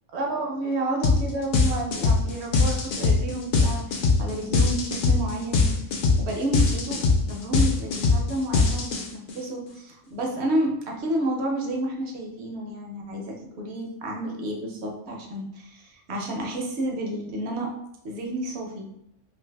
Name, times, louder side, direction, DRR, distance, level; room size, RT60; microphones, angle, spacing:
voice 1, 0.1-5.7 6.2-17.7 18.0-18.9, right 1 dB, 65° right, 1 dB, 0.9 m, -30 dB
sound 1, 1.0-1.2 1.5-9.3, left 4 dB, 60° left, 0.5 m, -21 dB
2.7 x 2.6 x 3.3 m, 0.81 s
omnidirectional pair, 1.3 m